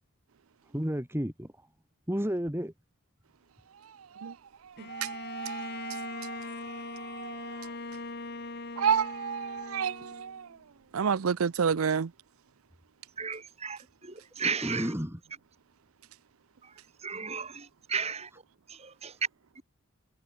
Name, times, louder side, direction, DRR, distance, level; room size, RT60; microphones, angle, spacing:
voice 1, 0.7-1.5 2.1-2.7 14.4-15.2, equal, 10° right, 2.4 m, -32 dB
Bowed string instrument, 4.8-10.5, left 3 dB, 50° left, 2.1 m, -41 dB
voice 2, 4.9-7.6 8.8-10.5 10.9-12.1, right 6 dB, 90° right, 0.5 m, -30 dB
voice 3, 13.2-15.0 17.0-18.3 18.7-19.1 19.6-19.7, right 5 dB, 30° right, 2.5 m, -35 dB
head